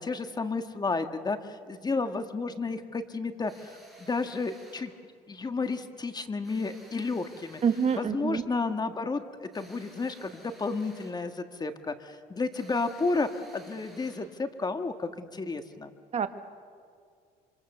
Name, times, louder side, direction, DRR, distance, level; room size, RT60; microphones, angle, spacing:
voice 1, 0.0-3.7 4.0-4.9 5.3-7.6 8.0-15.9, left 3 dB, 25° left, 8 dB, 1.6 m, -32 dB
sound 1, 3.5-4.9 6.4-8.1 9.5-11.3 12.5-14.3, right 1 dB, ahead, 7.9 m, -54 dB
voice 2, 7.6-8.4 16.1-16.3, right 7 dB, 40° right, 9 dB, 1.6 m, -26 dB
26.0 x 25.5 x 6.8 m, 2.1 s
cardioid pair, 110°, 17 cm